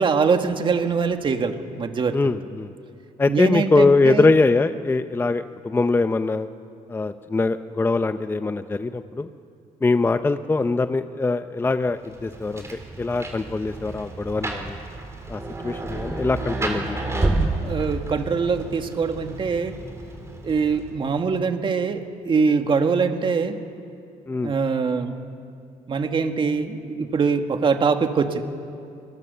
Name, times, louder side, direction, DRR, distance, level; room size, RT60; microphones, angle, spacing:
voice 1, 0.0-2.2 3.3-4.3 17.6-19.8 20.4-23.6 24.4-25.1 25.9-28.4, right 5 dB, 35° right, 6 dB, 1.9 m, -23 dB
voice 2, 2.1-2.7 3.2-6.5 6.9-9.3 9.8-14.8 15.3-17.3 24.3-24.5, left 3 dB, 15° left, 10 dB, 0.7 m, -22 dB
Rain, 12.0-21.1, right 2 dB, 20° right, 3.9 m, -30 dB
27.5 x 21.5 x 6.8 m, 2.7 s
cardioid pair, 105°, 14 cm